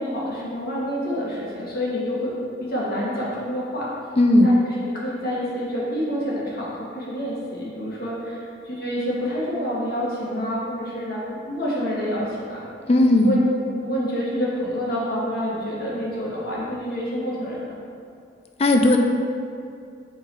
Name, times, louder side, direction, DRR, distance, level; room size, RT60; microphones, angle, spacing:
voice 1, 0.0-3.9 4.4-4.5 4.8-12.7 13.2-13.4 13.7-17.7 18.9-19.0, equal, 50° left, -6 dB, 1.4 m, -28 dB
voice 2, 4.2-4.5 12.9-13.4 18.6-19.0, left 1 dB, 30° left, 4 dB, 0.4 m, -16 dB
7.1 x 3.8 x 4.3 m, 2.4 s
head